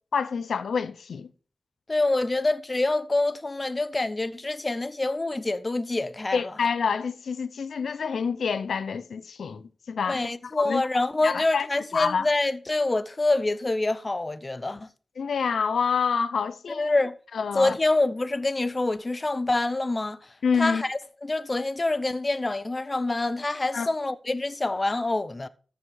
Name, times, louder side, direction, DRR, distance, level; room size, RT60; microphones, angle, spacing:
voice 1, 0.1-1.3 6.3-10.2 10.5-10.8 11.2-11.7 11.9-12.3 15.2-16.9 17.3-17.8 20.4-20.8 23.7-23.9, left 6 dB, 90° left, 0.6 m, -27 dB
voice 2, 1.9-6.4 10.1-14.9 16.7-17.1 17.5-20.2 20.6-25.5, left 2 dB, 30° left, 0.6 m, -26 dB
13.5 x 5.0 x 4.7 m
wide cardioid pair, 90°, 0 cm